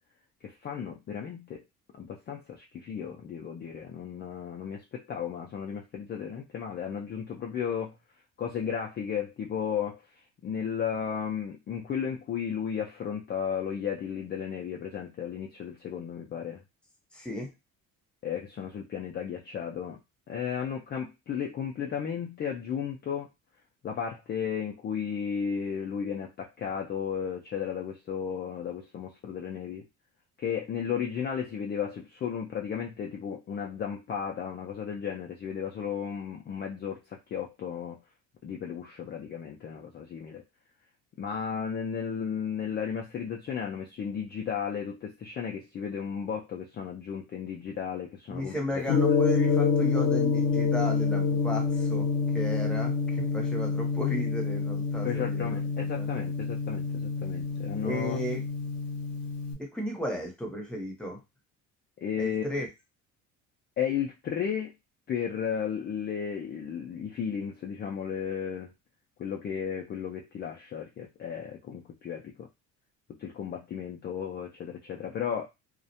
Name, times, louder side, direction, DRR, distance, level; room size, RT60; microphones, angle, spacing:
voice 1, 0.4-1.6 2.0-7.9 8.4-10.0 10.4-16.6 18.2-20.0 20.3-23.3 23.8-29.9 30.4-38.0 38.4-40.4 41.2-48.8 55.0-58.2 62.0-62.4 63.8-64.7 65.1-68.7 69.2-72.5 73.2-75.5, left 7 dB, 30° left, 0 dB, 0.4 m, -34 dB
voice 2, 17.1-17.5 48.3-52.1 52.3-56.1 57.8-58.4 59.6-61.2 62.2-62.7, equal, 5° left, 0 dB, 0.8 m, -34 dB
Gong, 48.9-59.5, left 5 dB, 75° left, 0.7 m, -27 dB
2.4 x 2.1 x 2.7 m, 0.23 s
cardioid pair, 110°, 33 cm